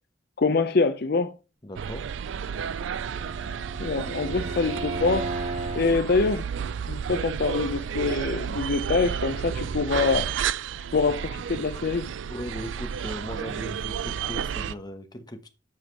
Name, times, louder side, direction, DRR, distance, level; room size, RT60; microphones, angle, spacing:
voice 1, 0.4-1.3 3.8-5.3 5.7-6.4 6.9-10.3 10.9-12.1, left 4 dB, 55° left, 0.6 m, -25 dB
voice 2, 1.6-2.1 12.3-15.5, equal, 20° left, 1.0 m, -38 dB
sound 1, 1.8-14.7, right 7 dB, 75° right, 0.4 m, -32 dB
Bowed string instrument, 2.4-6.0, right 2 dB, 40° right, 1.8 m, -35 dB
7.5 x 5.1 x 4.6 m
head